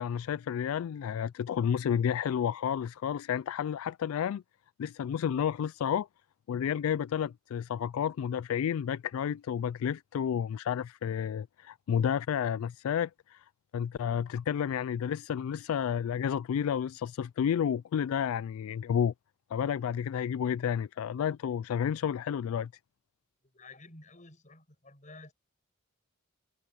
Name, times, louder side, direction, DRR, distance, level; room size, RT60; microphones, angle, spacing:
voice 1, 0.0-4.4 4.8-6.1 6.5-13.4 13.7-19.1 19.5-22.7, left 8 dB, 80° left, 0.3 m, -31 dB
voice 2, 23.5-25.3, left 2 dB, 35° left, 7.7 m, -52 dB
head